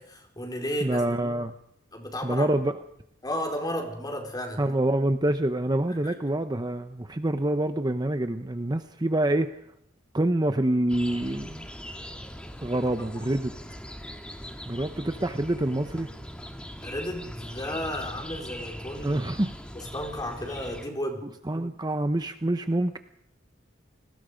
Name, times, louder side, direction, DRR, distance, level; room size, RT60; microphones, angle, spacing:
voice 1, 0.0-1.0 1.9-2.5 3.2-4.7 5.9-6.2 13.2-13.3 16.8-19.2 19.7-21.2, equal, 20° left, 2 dB, 4.5 m, -33 dB
voice 2, 0.8-1.5 2.2-2.7 4.6-9.6 10.1-11.7 12.6-13.5 14.7-16.1 19.0-19.5 21.5-23.0, right 1 dB, 20° right, 9 dB, 0.8 m, -26 dB
sound 1, 10.9-20.9, equal, 5° left, 2.1 m, -41 dB
29.5 x 20.0 x 5.2 m, 0.76 s
head